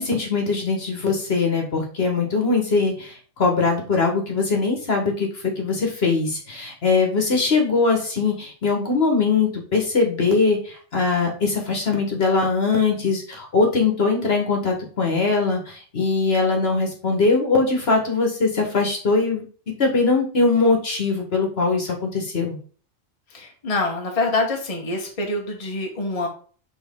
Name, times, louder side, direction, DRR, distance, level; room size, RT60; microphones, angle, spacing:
voice 1, 0.0-19.5 19.8-22.6, left 4 dB, 50° left, 2 dB, 1.6 m, -21 dB
voice 2, 23.3-26.3, left 2 dB, 30° left, 1 dB, 1.3 m, -25 dB
6.3 x 4.2 x 3.6 m, 0.41 s
omnidirectional pair, 1.3 m